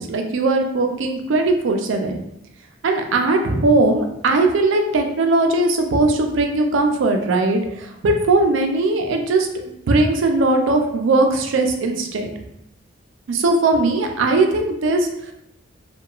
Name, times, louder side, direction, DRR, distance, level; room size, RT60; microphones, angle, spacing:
voice 1, 0.0-2.2 2.8-9.5 9.9-12.3 13.3-15.3, right 2 dB, 75° right, 4 dB, 0.4 m, -19 dB
2.8 x 2.2 x 2.3 m, 0.79 s
head